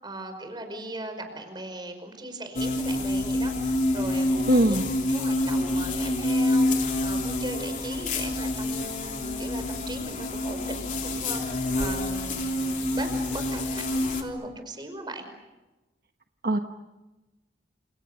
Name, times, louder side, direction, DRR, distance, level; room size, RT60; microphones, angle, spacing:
voice 1, 0.0-4.8 5.1-15.3, right 1 dB, 25° right, 7 dB, 5.3 m, -39 dB
sound 1, 2.6-14.2, left 1 dB, 45° left, 3.6 m, -27 dB
voice 2, 4.5-4.8 16.4-16.6, right 1 dB, 55° right, 5 dB, 1.2 m, -20 dB
30.0 x 28.5 x 6.8 m, 1.1 s
head